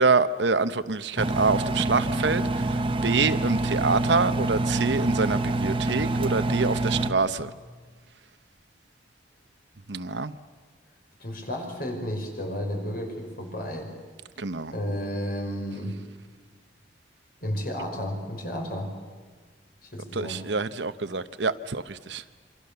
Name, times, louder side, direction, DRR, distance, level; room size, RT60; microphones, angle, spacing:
voice 1, 0.0-2.4 3.0-7.5 9.9-10.3 14.4-14.7 20.1-22.2, right 4 dB, 90° right, 12 dB, 1.0 m, -26 dB
Engine, 1.2-7.1, right 2 dB, 30° right, 1.0 m, -26 dB
voice 2, 11.2-13.9 14.7-16.0 17.4-18.9 19.8-20.4, equal, 55° left, 3 dB, 5.4 m, -32 dB
27.0 x 25.0 x 6.9 m, 1.5 s
head